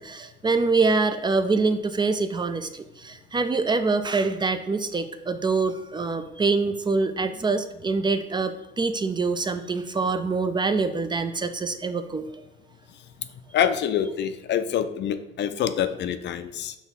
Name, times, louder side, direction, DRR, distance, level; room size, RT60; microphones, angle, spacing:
voice 1, 0.0-12.3, right 4 dB, 25° right, 9 dB, 0.3 m, -25 dB
voice 2, 13.5-16.8, left 9 dB, 65° left, 11 dB, 0.4 m, -26 dB
5.5 x 2.3 x 4.1 m, 0.88 s
cardioid pair, 90°, 20 cm